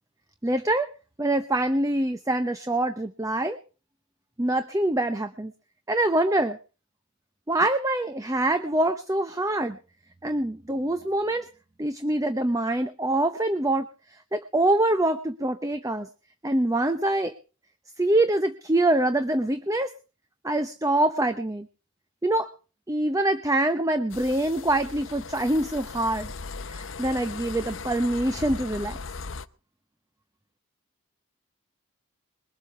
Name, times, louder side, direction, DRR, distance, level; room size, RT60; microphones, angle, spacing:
voice 1, 0.4-0.9 1.2-3.6 4.4-5.5 5.9-6.6 7.5-9.8 10.2-11.5 11.8-13.9 14.3-16.1 16.4-17.3 18.0-19.9 20.4-21.7 22.2-22.5 22.9-26.3 26.7-29.0, right 1 dB, 15° right, 10 dB, 0.7 m, -25 dB
sound 1, 24.1-29.5, left 4 dB, 60° left, 0.8 m, -38 dB
21.5 x 7.9 x 6.7 m, 0.37 s
head